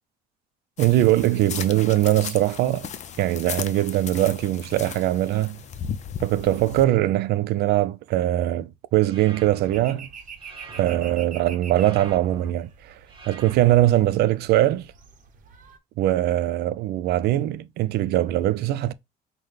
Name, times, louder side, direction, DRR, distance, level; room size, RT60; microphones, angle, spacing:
Walking through forest, 0.8-6.8, left 8 dB, 45° left, 0.5 m, -36 dB
voice 1, 0.8-2.9 3.2-5.6 6.2-10.1 10.8-12.7 13.3-14.9 16.0-18.9, right 14 dB, 70° right, 0.4 m, -21 dB
sound 1, 9.0-9.8 10.4-11.2 11.7-12.5 13.1-13.9, right 3 dB, 30° right, 1.4 m, -43 dB
sound 2, 9.7-15.8, right 6 dB, 50° right, 0.9 m, -45 dB
5.6 x 2.2 x 3.3 m
cardioid pair, 110°, 17 cm